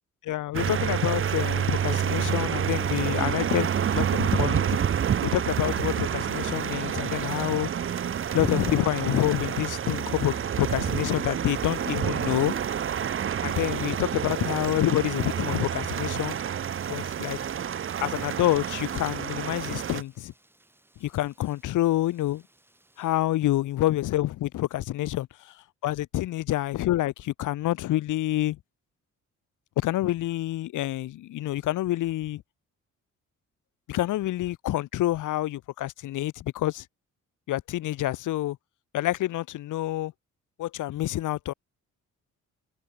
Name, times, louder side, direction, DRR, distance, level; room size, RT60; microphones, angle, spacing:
voice 1, 0.2-4.8 5.2-7.7 8.3-12.5 13.4-16.4 16.9-17.4 18.0-20.3 21.0-22.4 23.0-25.5 25.8-28.6 29.8-32.4 33.9-36.8 37.5-38.6 38.9-40.1 40.6-41.5, left 15 dB, 85° left, 1.6 m, -27 dB
sound 1, 0.5-20.0, right 8 dB, 45° right, 1.3 m, -28 dB
Thunder / Rain, 6.2-23.1, right 1 dB, 5° right, 4.7 m, -45 dB
cardioid pair, 125°, 30 cm